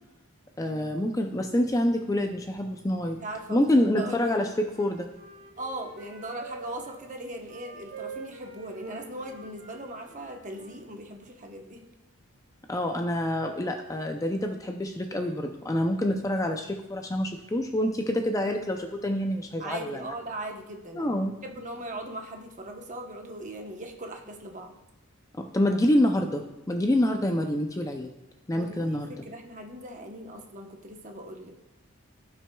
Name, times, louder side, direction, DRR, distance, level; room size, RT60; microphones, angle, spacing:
voice 1, 0.6-3.2 3.5-5.1 12.7-20.0 20.9-21.4 25.3-28.1 28.5-29.1, left 1 dB, 15° left, 4 dB, 0.4 m, -27 dB
voice 2, 3.2-3.6 4.0-4.1 5.6-11.8 19.6-21.2 21.4-24.7 28.5-31.5, right 1 dB, 35° right, 2 dB, 0.9 m, -39 dB
Wind instrument woodwind instrument, 4.3-7.0 7.4-10.8, right 4 dB, 80° right, 2.4 m, -46 dB
16.0 x 6.1 x 2.3 m, 0.99 s
head